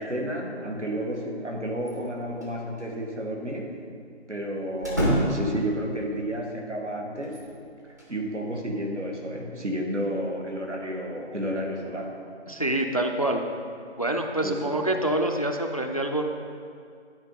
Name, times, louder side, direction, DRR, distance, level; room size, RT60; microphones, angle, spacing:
voice 1, 0.0-3.8 4.3-7.4 7.8-12.2 14.4-14.8, right 1 dB, 80° right, 1 dB, 1.7 m, -31 dB
sound 1, 1.8-2.5 2.8-2.9 4.8-5.7 7.2-8.2, equal, 15° right, 0.7 m, -27 dB
voice 2, 12.5-13.4 14.0-16.2, right 1 dB, 35° left, 4 dB, 0.4 m, -26 dB
11.0 x 4.5 x 5.4 m, 2.3 s
figure-of-eight pair, 155°, 35 cm